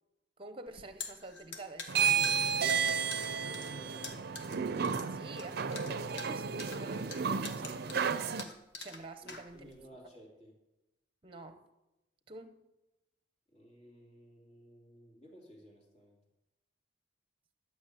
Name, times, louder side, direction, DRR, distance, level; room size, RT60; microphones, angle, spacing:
voice 1, 0.4-2.3 5.1-9.7 11.2-11.6 12.3-12.6, right 2 dB, 30° right, 0.9 m, -48 dB
sound 1, 0.7-9.9, left 4 dB, 65° left, 1.5 m, -46 dB
sound 2, 1.9-8.4, right 6 dB, 55° right, 0.6 m, -32 dB
voice 2, 2.2-4.3 9.2-10.6 13.5-16.2, equal, 40° left, 3.0 m, -53 dB
12.0 x 6.3 x 8.2 m
head